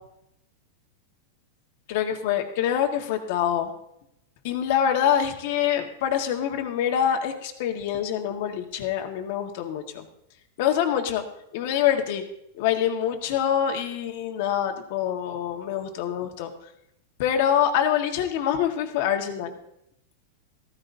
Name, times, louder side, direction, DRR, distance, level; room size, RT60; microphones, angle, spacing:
voice 1, 1.9-3.7 4.4-10.0 10.6-11.2 11.5-12.2 12.5-16.7 17.2-19.6, left 9 dB, 55° left, 4 dB, 1.6 m, -25 dB
15.0 x 14.5 x 2.7 m, 0.79 s
supercardioid pair, 150°, 0 cm